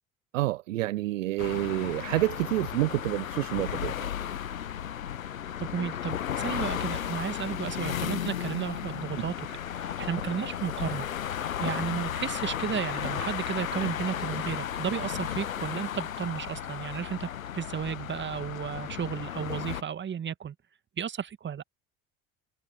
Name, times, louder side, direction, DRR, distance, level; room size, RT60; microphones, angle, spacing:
voice 1, 0.3-4.1, right 17 dB, 65° right, 0.7 m, -28 dB
sound 1, 1.4-19.8, left 10 dB, 80° left, 1.0 m, -34 dB
voice 2, 5.6-20.6 21.0-21.6, right 8 dB, 25° right, 1.9 m, -33 dB
figure-of-eight pair, 60°, 41 cm